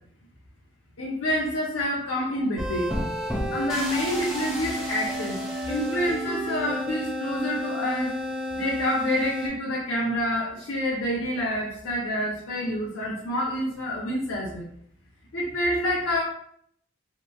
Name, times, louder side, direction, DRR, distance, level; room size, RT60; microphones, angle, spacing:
voice 1, 1.0-2.9 3.5-5.4 5.6-8.1 8.5-14.6 15.3-16.2, left 1 dB, 90° left, -5 dB, 0.6 m, -27 dB
sound 1, 2.6-9.5, equal, 5° right, 0.4 m, -31 dB
2.9 x 2.4 x 2.2 m, 0.67 s
head